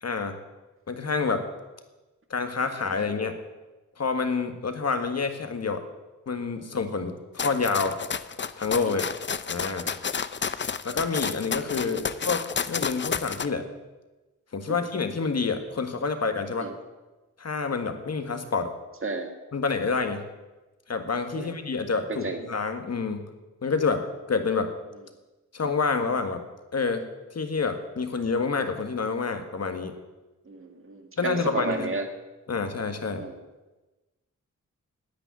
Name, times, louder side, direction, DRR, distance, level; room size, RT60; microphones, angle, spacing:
voice 1, 0.0-0.4 0.9-1.4 2.3-3.3 4.0-5.8 6.3-8.0 8.6-9.0 9.5-9.9 10.8-13.6 14.5-16.7 17.4-18.7 19.5-20.3 20.9-23.3 23.6-24.7 25.5-26.4 26.7-27.0 27.3-29.9 31.2-31.9 32.5-33.2, left 4 dB, 55° left, 7 dB, 1.7 m, -28 dB
sound 1, 7.4-13.5, left 6 dB, 35° left, 0.6 m, -31 dB
voice 2, 22.1-22.4 30.5-32.0 33.2-33.3, right 3 dB, 40° right, 5 dB, 2.0 m, -32 dB
10.0 x 9.2 x 9.6 m, 1.1 s
wide cardioid pair, 100°, 31 cm